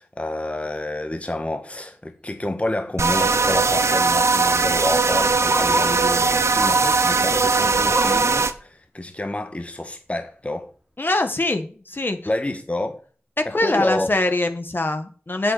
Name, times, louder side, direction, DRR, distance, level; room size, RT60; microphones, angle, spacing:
voice 1, 0.0-10.7 12.2-13.0 13.4-14.1, left 1 dB, 30° left, 1.6 m, -29 dB
Bark, 2.3-2.6 2.9-3.0 3.2-6.1 6.5-6.9 7.3-8.3 8.8-8.9 9.3-9.4 10.0-10.1, right 1 dB, 15° right, 2.7 m, -33 dB
sound 1, 3.0-8.5, right 4 dB, 85° right, 1.0 m, -19 dB
voice 2, 11.0-12.2 13.4-15.5, left 2 dB, 50° left, 1.8 m, -23 dB
8.0 x 7.4 x 8.7 m
wide cardioid pair, 55°, 5 cm